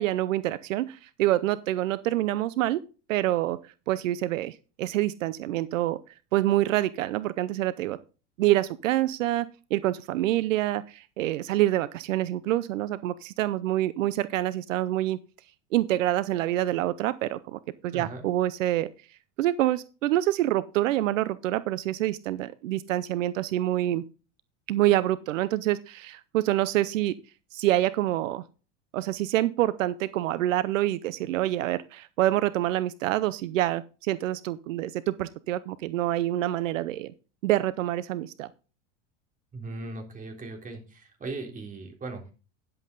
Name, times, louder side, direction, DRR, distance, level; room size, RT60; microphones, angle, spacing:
voice 1, 0.0-2.8 3.1-3.6 3.9-6.0 6.3-8.0 8.4-15.2 15.7-18.9 19.4-24.0 24.7-27.1 27.5-28.4 28.9-37.1 37.4-38.5, right 14 dB, 90° right, 17 dB, 0.7 m, -26 dB
voice 2, 17.9-18.3 39.5-42.3, right 3 dB, 20° right, 2 dB, 3.5 m, -38 dB
10.5 x 7.7 x 3.8 m, 0.33 s
supercardioid pair, 115°, 37 cm